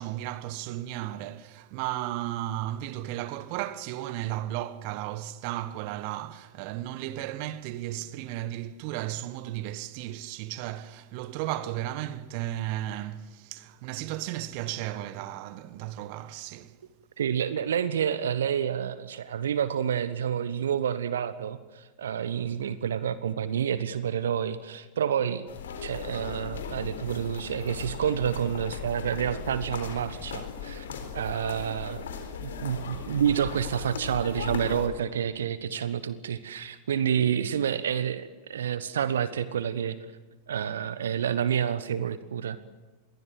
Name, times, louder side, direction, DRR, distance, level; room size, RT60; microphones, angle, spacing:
voice 1, 0.0-16.8, right 14 dB, 45° right, 1.3 m, -34 dB
voice 2, 17.2-25.5 25.8-30.8 31.1-32.0 32.4-40.0 40.5-42.6, right 8 dB, 65° right, 1.2 m, -29 dB
sound 1, 25.5-34.9, left 6 dB, 65° left, 3.9 m, -38 dB
27.5 x 22.5 x 7.8 m
figure-of-eight pair, 90°, 0 cm